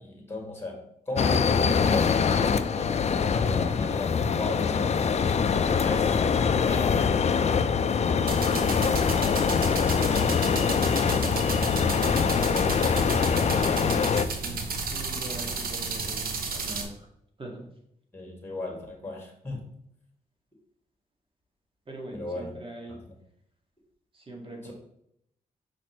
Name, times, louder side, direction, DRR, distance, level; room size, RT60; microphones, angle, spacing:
voice 1, 0.0-5.0 5.7-6.1 6.6-7.3 18.1-19.6 22.1-22.5 22.9-23.0 24.6-24.7, left 2 dB, 15° left, 0 dB, 2.1 m, -35 dB
sound 1, 1.2-14.2, left 6 dB, 45° left, 0.5 m, -24 dB
Close Up Sprikler Edit, 8.3-16.8, right 4 dB, 70° right, 1.0 m, -33 dB
voice 2, 8.5-9.1 9.8-11.6 12.5-17.1 17.4-17.7 21.9-23.0 24.1-24.7, right 1 dB, 35° right, 0 dB, 2.0 m, -42 dB
5.9 x 5.1 x 3.1 m, 0.74 s
cardioid pair, 70°, 15 cm